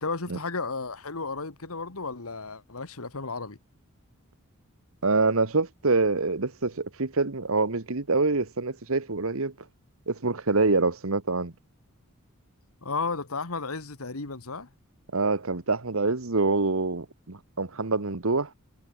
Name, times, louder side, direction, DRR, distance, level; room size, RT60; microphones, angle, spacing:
voice 1, 0.0-3.6 12.8-14.7, left 4 dB, 70° left, 1.8 m, -33 dB
voice 2, 5.0-9.5 10.1-11.5 15.1-18.5, right 3 dB, 65° right, 1.3 m, -25 dB
head